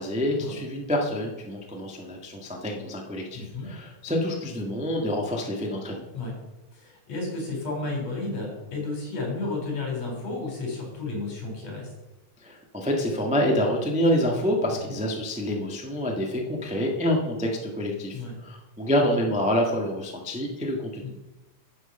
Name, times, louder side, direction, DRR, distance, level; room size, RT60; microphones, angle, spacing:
voice 1, 0.0-6.1 12.4-21.1, equal, 10° right, 0 dB, 0.3 m, -27 dB
voice 2, 3.3-3.7 6.1-6.3 6.7-11.9 14.8-15.0 18.1-18.4 21.0-21.1, left 3 dB, 60° left, 0 dB, 5.0 m, -32 dB
12.0 x 8.2 x 5.4 m, 1.0 s
omnidirectional pair, 3.5 m